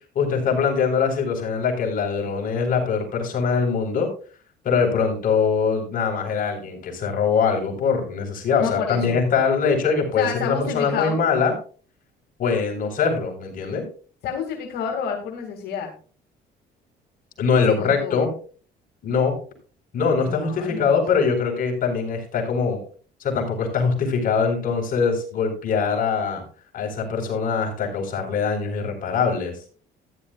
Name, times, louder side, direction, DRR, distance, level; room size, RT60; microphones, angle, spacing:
voice 1, 0.1-4.1 4.6-11.5 12.4-13.9 17.4-18.3 19.0-19.4 19.9-22.8 23.2-26.4 26.7-29.5, left 5 dB, 55° left, 1 dB, 4.4 m, -22 dB
voice 2, 8.6-9.2 10.2-11.2 14.2-15.9 17.7-18.2 20.2-21.0, left 7 dB, 70° left, 2 dB, 2.4 m, -29 dB
14.0 x 11.0 x 2.4 m, 0.40 s
cardioid pair, 110°, 17 cm